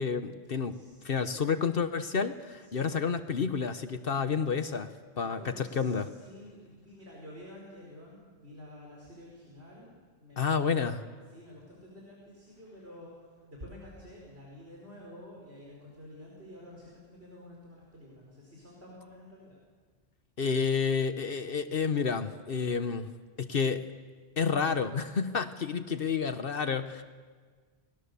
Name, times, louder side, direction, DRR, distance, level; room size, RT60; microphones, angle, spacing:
voice 1, 0.0-0.8 1.0-6.1 10.4-11.0 20.4-23.1 23.4-23.8 24.4-27.0, left 5 dB, 65° left, 9 dB, 1.2 m, -30 dB
voice 2, 0.7-1.8 2.6-3.1 5.3-19.6, left 1 dB, 85° right, -3 dB, 5.0 m, -50 dB
29.5 x 20.0 x 6.9 m, 1.5 s
omnidirectional pair, 1.1 m